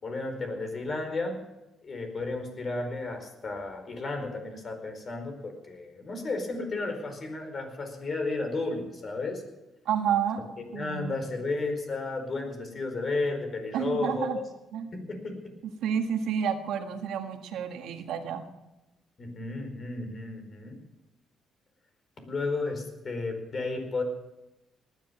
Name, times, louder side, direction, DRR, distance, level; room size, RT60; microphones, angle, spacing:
voice 1, 0.0-1.4 1.8-9.4 10.6-14.4 14.9-15.4 19.2-20.8 22.3-24.0, left 3 dB, 45° left, 5 dB, 4.6 m, -33 dB
voice 2, 9.8-10.5 10.7-11.2 13.7-14.4 14.7-14.9 15.8-18.5, right 8 dB, 85° right, 6 dB, 1.6 m, -30 dB
19.0 x 10.5 x 7.0 m, 0.99 s
cardioid pair, 90°, 0 cm